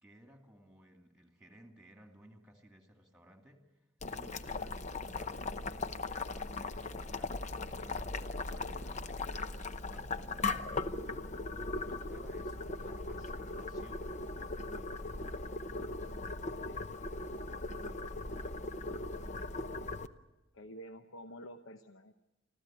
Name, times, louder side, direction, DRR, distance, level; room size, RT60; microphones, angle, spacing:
voice 1, 0.0-3.6 4.1-7.5 7.8-9.2 9.5-14.2, equal, 5° right, 4 dB, 2.5 m, -59 dB
Boiling, 4.0-20.1, left 3 dB, 40° left, 0.8 m, -39 dB
voice 2, 20.5-22.1, equal, 85° left, 8 dB, 0.9 m, -49 dB
25.5 x 15.0 x 9.1 m, 1.1 s
head